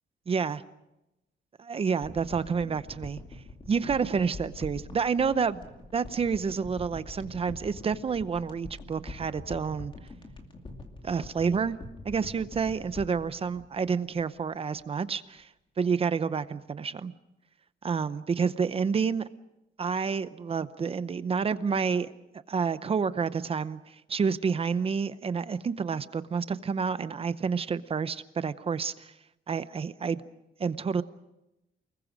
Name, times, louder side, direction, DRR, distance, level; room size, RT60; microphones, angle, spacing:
voice 1, 0.3-0.6 1.6-3.2 3.7-5.6 5.9-9.9 11.0-11.8 12.0-15.5 15.8-17.1 17.8-19.3 19.8-22.1 22.5-29.1 29.5-30.2 30.6-31.0, right 6 dB, 30° right, 14 dB, 0.7 m, -29 dB
sound 1, 2.0-14.5 14.8-14.9, left 2 dB, 25° left, 2.4 m, -45 dB
29.0 x 20.5 x 6.2 m, 0.93 s
wide cardioid pair, 175°, 19 cm